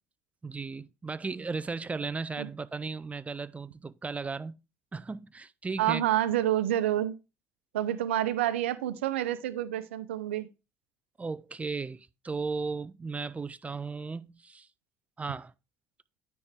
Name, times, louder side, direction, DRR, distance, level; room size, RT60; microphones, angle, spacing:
voice 1, 0.4-4.5 4.9-6.0 11.2-14.7 15.2-15.5, right 4 dB, 20° right, 0.5 m, -36 dB
voice 2, 5.8-7.1 7.7-10.5, right 12 dB, 85° right, 0.7 m, -28 dB
9.6 x 4.4 x 3.5 m
hypercardioid pair, 65°, 6 cm